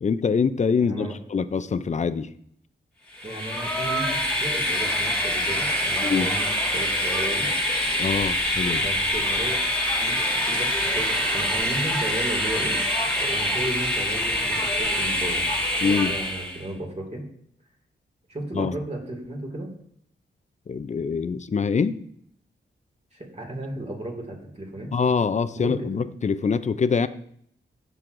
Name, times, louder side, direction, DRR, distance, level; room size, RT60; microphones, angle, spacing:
voice 1, 0.0-2.3 6.0-6.3 8.0-8.9 15.8-16.1 18.5-18.7 20.7-22.0 24.9-27.1, left 5 dB, 35° left, 13 dB, 0.4 m, -24 dB
voice 2, 0.8-1.1 3.2-7.5 8.7-9.6 9.9-11.1 11.3-15.5 16.1-17.2 18.3-19.7 23.1-24.9 25.6-25.9, right 1 dB, 35° right, 0 dB, 2.2 m, -34 dB
Train, 3.1-16.6, equal, 5° left, 1.9 m, -25 dB
10.5 x 6.2 x 2.6 m, 0.65 s
wide cardioid pair, 85°, 20 cm